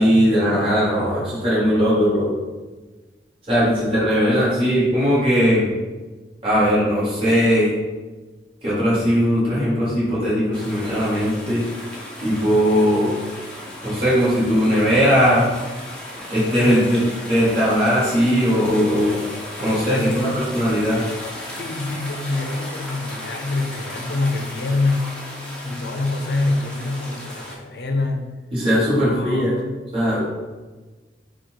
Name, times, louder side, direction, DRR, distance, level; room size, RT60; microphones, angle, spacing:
voice 1, 0.0-2.3 3.5-5.6 6.4-7.7 8.6-11.6 12.2-13.1 13.8-15.5 16.3-17.0 17.3-19.2 19.6-21.0 28.5-29.5 29.9-30.2, equal, 30° right, -9 dB, 1.2 m, -19 dB
sound 1, 10.5-27.6, left 1 dB, 5° left, 0.6 m, -35 dB
voice 2, 16.6-16.9 19.6-20.9 21.5-25.1 25.6-28.3 28.9-29.6, left 2 dB, 70° left, 4 dB, 0.5 m, -26 dB
3.7 x 2.3 x 4.5 m, 1.3 s
head